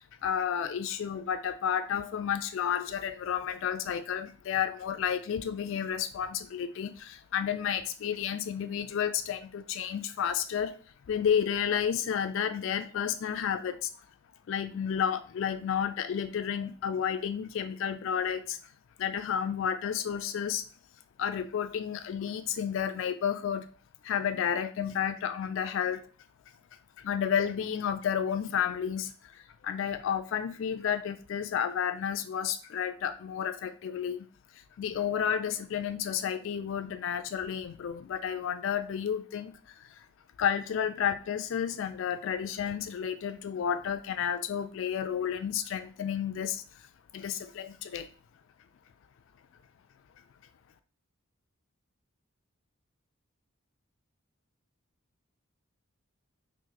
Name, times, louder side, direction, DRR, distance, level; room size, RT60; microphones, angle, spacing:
voice 1, 0.0-10.8 11.1-13.9 14.5-18.6 19.0-20.7 21.2-23.7 24.0-26.0 27.0-34.3 34.8-40.1 40.4-46.9 47.1-48.1, left 8 dB, 60° left, 10 dB, 0.3 m, -31 dB
3.0 x 2.6 x 3.8 m, 0.40 s
head